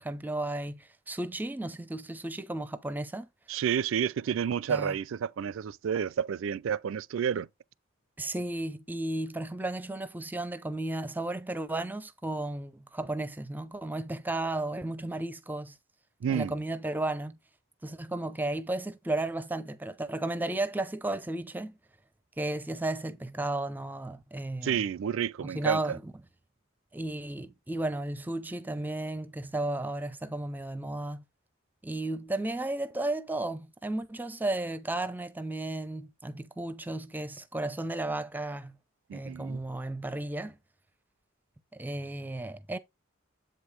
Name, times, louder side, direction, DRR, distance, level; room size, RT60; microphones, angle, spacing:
voice 1, 0.0-3.3 4.7-4.9 8.2-15.7 16.3-17.4 17.8-21.8 22.4-24.8 25.4-26.0 26.9-31.2 31.8-38.8 39.1-40.6 41.8-42.8, right 2 dB, 10° right, 0.5 m, -34 dB
voice 2, 3.5-7.5 16.2-16.6 24.6-26.0 39.1-39.6, right 8 dB, 65° right, 0.3 m, -30 dB
7.7 x 4.9 x 3.2 m
head